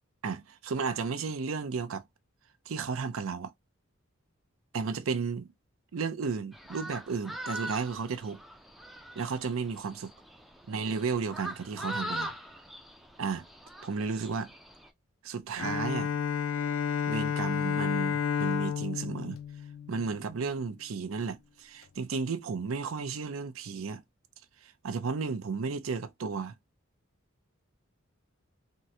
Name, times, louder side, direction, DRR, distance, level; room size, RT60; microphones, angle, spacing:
voice 1, 0.2-2.0 2.7-3.5 4.7-5.5 5.9-8.4 9.2-10.1 10.7-12.3 13.2-13.5 13.8-14.5 15.2-16.1 17.1-19.4 19.9-24.0 24.6-26.5, right 5 dB, 80° right, 0.5 m, -33 dB
sound 1, 6.5-14.9, equal, ahead, 0.3 m, -42 dB
Bowed string instrument, 15.6-20.5, left 7 dB, 85° left, 0.5 m, -31 dB
3.6 x 2.1 x 2.7 m
head